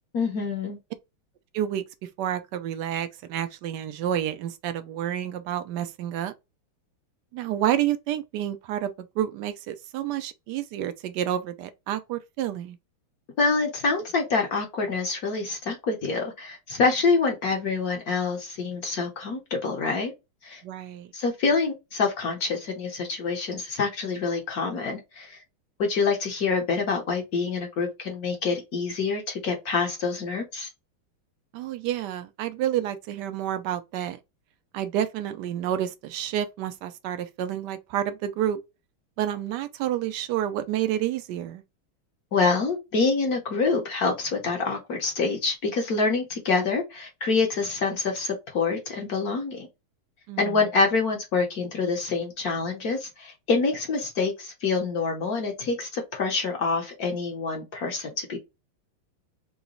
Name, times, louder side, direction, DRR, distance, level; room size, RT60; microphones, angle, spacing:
voice 1, 0.1-0.8 13.4-20.1 20.4-20.6 21.1-25.4 25.8-30.7 42.3-49.7 50.4-58.4, left 4 dB, 55° left, 1.2 m, -26 dB
voice 2, 2.2-6.3 7.3-12.8 20.6-21.1 31.5-34.2 34.7-38.6 39.2-41.6 50.3-50.6, right 11 dB, 75° right, 1.0 m, -29 dB
3.9 x 2.1 x 3.7 m
omnidirectional pair, 2.3 m